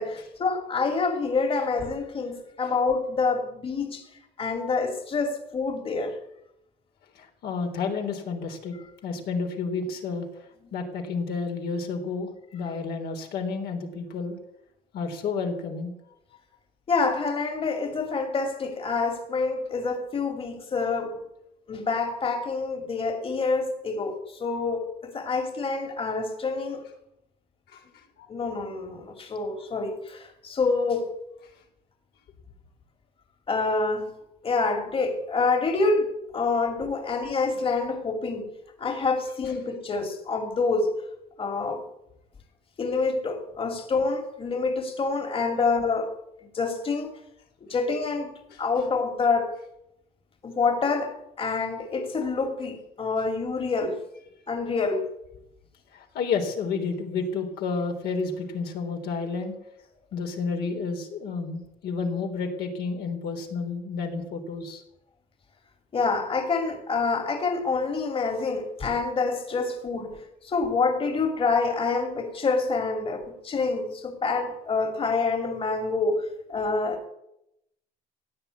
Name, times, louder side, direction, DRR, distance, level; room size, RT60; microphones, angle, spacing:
voice 1, 0.0-4.0 4.4-6.2 16.9-21.2 21.7-26.8 28.3-31.1 33.5-34.1 34.4-38.5 38.8-40.9 41.4-41.8 42.8-46.1 46.4-47.1 47.7-49.6 50.4-54.0 54.5-55.1 65.9-77.0, left 4 dB, 35° left, 2.5 m, -27 dB
voice 2, 7.1-8.8 9.0-14.4 14.9-15.9 27.7-28.3 48.5-48.6 55.9-59.6 60.1-64.8, left 4 dB, 70° left, 3.7 m, -31 dB
16.0 x 9.5 x 8.3 m
cardioid pair, 110°, 17 cm